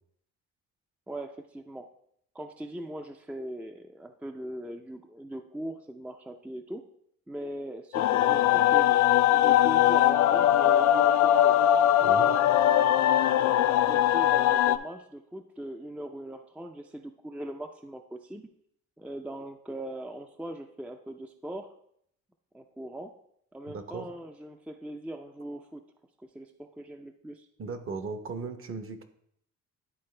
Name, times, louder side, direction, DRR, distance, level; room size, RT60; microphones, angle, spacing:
voice 1, 1.1-1.9 2.3-6.9 7.3-12.4 13.3-18.5 19.0-21.7 22.5-23.2 23.5-25.8 26.2-27.5, right 1 dB, 5° right, 5 dB, 0.4 m, -40 dB
sound 1, 7.9-14.8, left 12 dB, 70° left, 0.4 m, -21 dB
voice 2, 12.0-12.3 23.7-24.1 27.6-29.0, right 4 dB, 45° right, 8 dB, 0.9 m, -37 dB
10.5 x 4.1 x 3.3 m, 0.70 s
cardioid pair, 90°, 30 cm